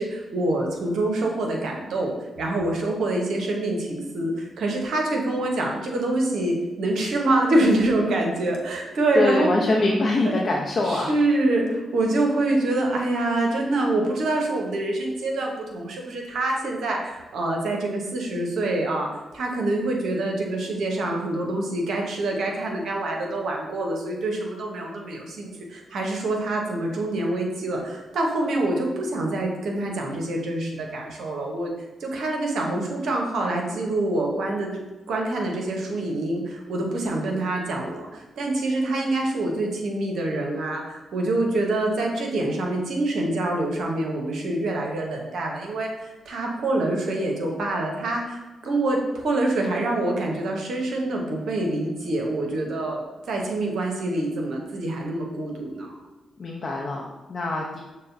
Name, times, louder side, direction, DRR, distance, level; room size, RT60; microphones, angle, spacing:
voice 1, 0.0-9.5 10.2-10.4 10.8-19.1 19.3-31.7 32.0-34.8 35.1-56.0, right 2 dB, 70° right, 1 dB, 0.8 m, -26 dB
voice 2, 9.1-11.1 56.4-57.8, left 2 dB, 55° left, -2 dB, 0.6 m, -24 dB
6.5 x 2.2 x 2.6 m, 1.1 s
hypercardioid pair, 40°, 0 cm